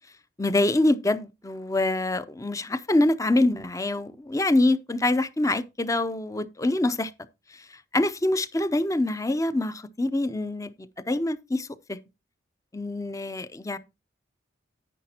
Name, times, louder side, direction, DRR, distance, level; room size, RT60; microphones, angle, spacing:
voice 1, 0.4-7.1 7.5-12.0 12.7-13.8, left 2 dB, 15° left, 0.6 m, -25 dB
10.0 x 9.5 x 2.8 m
head